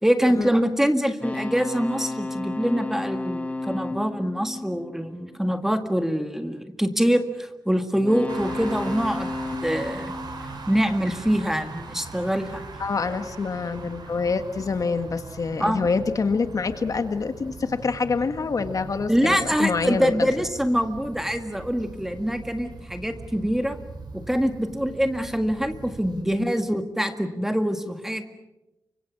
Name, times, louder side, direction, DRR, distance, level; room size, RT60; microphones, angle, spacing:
voice 1, 0.0-9.3 9.6-10.1 10.7-12.7 15.6-15.9 19.1-23.8 24.1-28.3, equal, 5° right, 7 dB, 1.7 m, -24 dB
sound 1, 1.2-5.6 7.9-11.2, left 2 dB, 20° left, 1.6 m, -33 dB
sound 2, 8.3-26.2, right 3 dB, 85° right, 5.5 m, -41 dB
voice 2, 12.8-20.3 26.2-26.5, left 4 dB, 55° left, 9 dB, 1.7 m, -26 dB
29.5 x 25.0 x 6.2 m, 0.94 s
wide cardioid pair, 160°, 7 cm